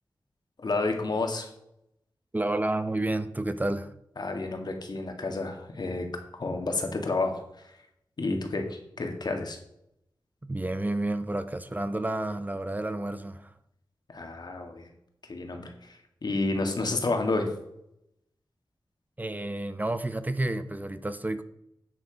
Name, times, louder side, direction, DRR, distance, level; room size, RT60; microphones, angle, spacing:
voice 1, 0.6-1.5 4.2-6.1 6.3-7.4 8.2-9.6 14.1-14.9 15.3-17.5, left 3 dB, 60° left, 1.9 m, -30 dB
voice 2, 2.3-3.9 10.4-13.5 19.2-21.4, right 2 dB, 20° right, 0.7 m, -30 dB
10.0 x 7.0 x 5.2 m
wide cardioid pair, 85°, 8 cm